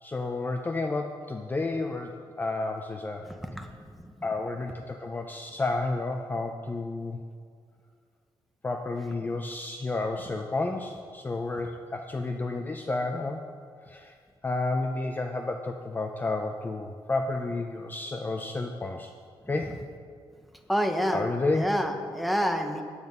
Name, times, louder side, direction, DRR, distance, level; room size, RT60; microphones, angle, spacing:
voice 1, 0.0-3.3 4.2-7.2 8.6-13.4 13.8-14.1 14.4-19.1 19.5-19.8 21.1-21.7, left 2 dB, 20° left, 4 dB, 0.5 m, -31 dB
voice 2, 20.7-21.2 21.5-22.8, equal, ahead, 5 dB, 0.9 m, -27 dB
9.6 x 9.5 x 5.4 m, 2.1 s
wide cardioid pair, 135°, 9 cm